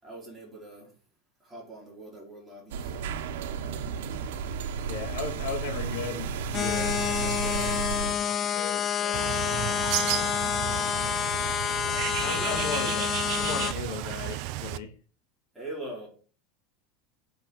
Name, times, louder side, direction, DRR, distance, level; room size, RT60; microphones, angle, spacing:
voice 1, 0.0-0.9 1.4-2.9 12.2-12.9 15.5-16.1, right 1 dB, 5° right, 4.9 m, -41 dB
sound 1, 2.7-8.2, right 6 dB, 90° right, 1.5 m, -33 dB
voice 2, 4.8-11.0 11.8-14.9, left 5 dB, 75° left, 2.7 m, -38 dB
sound 2, 6.5-13.7, left 9 dB, 25° left, 0.5 m, -28 dB
Bird, 9.1-14.8, right 16 dB, 50° right, 0.7 m, -33 dB
8.8 x 6.1 x 7.8 m
supercardioid pair, 170°, 0 cm